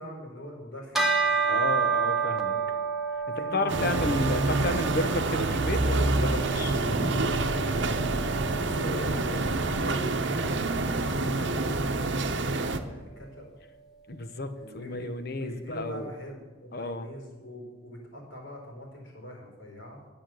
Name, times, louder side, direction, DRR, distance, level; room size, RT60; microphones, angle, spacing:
voice 1, 0.0-1.7 2.5-2.6 3.2-4.1 8.6-13.5 14.6-20.0, equal, 75° left, 0 dB, 4.4 m, -43 dB
Bell, 0.9-10.6, right 5 dB, ahead, 1.3 m, -31 dB
voice 2, 1.5-2.6 3.3-6.8 7.5-7.8 11.2-11.6 14.1-16.1 16.7-17.1, left 2 dB, 50° left, 9 dB, 1.0 m, -32 dB
sound 1, 3.7-12.8, right 2 dB, 60° right, 0.9 m, -27 dB
11.5 x 8.8 x 7.8 m, 1.3 s
head